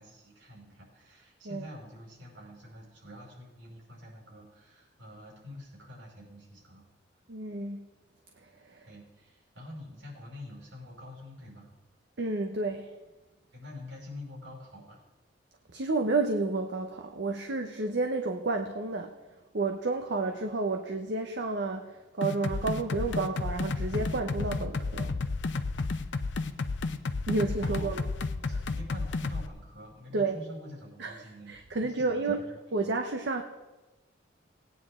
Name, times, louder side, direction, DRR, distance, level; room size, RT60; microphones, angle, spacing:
voice 1, 0.0-6.9 8.9-11.7 13.5-15.0 27.6-28.0 28.5-32.2 32.5-32.6, left 1 dB, 80° right, -3 dB, 5.1 m, -46 dB
voice 2, 7.3-7.9 8.4-8.9 12.2-12.9 15.7-19.1 19.5-25.2 27.3-28.1 28.5-28.6 30.1-30.4 31.0-31.2 31.5-32.5 32.7-33.4, right 3 dB, 65° right, 4 dB, 0.8 m, -31 dB
sound 1, 22.2-29.5, left 3 dB, 70° left, 0.6 m, -32 dB
18.5 x 9.4 x 3.7 m, 1.1 s
head